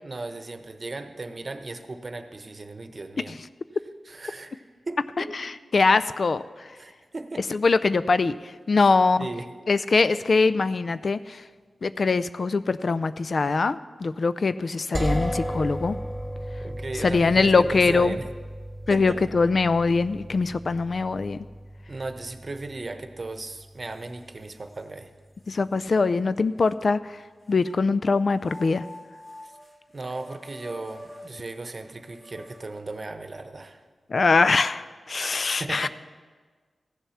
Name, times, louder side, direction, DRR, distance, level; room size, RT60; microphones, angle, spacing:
voice 1, 0.0-3.4 4.0-5.5 6.8-7.5 8.8-8.9 9.2-9.5 16.6-18.3 18.9-19.2 21.9-25.1 29.4-29.5 29.9-33.8 35.1-35.9, right 2 dB, 45° right, 8 dB, 1.0 m, -36 dB
voice 2, 5.4-6.4 7.5-8.3 8.7-9.3 9.7-11.4 11.8-16.0 17.0-18.1 18.9-21.4 25.5-27.0 27.5-28.8 34.1-35.9, left 4 dB, 60° left, 14 dB, 0.4 m, -22 dB
sound 1, 14.9-24.7, equal, 5° right, 2.8 m, -35 dB
sound 2, 23.3-23.4 23.9-24.8 25.5-25.6 26.6-27.8 28.4-33.3, left 1 dB, 35° left, 2.5 m, -47 dB
15.0 x 7.1 x 5.8 m, 1.5 s
cardioid pair, 50°, 0 cm